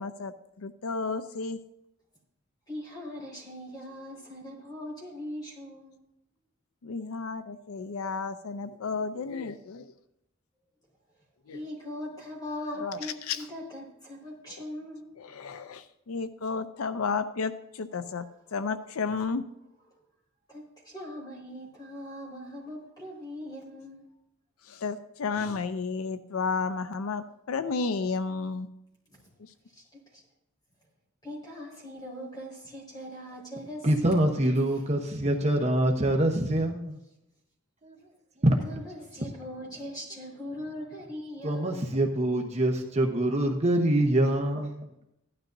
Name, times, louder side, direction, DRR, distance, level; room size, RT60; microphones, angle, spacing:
voice 1, 0.0-1.6 6.8-9.9 11.5-11.6 12.7-13.5 14.5-14.6 15.2-19.5 24.6-28.7 29.4-29.5, left 4 dB, 80° left, 11 dB, 0.5 m, -32 dB
voice 2, 2.7-6.0 11.5-15.1 20.5-24.0 31.2-34.3 34.7-34.9 38.6-42.0, left 1 dB, 20° left, -2 dB, 4.6 m, -40 dB
voice 3, 33.8-37.0 37.8-37.9 38.4-38.6 41.4-44.9, right 1 dB, 30° right, 2 dB, 1.0 m, -25 dB
16.0 x 12.0 x 2.6 m, 0.87 s
head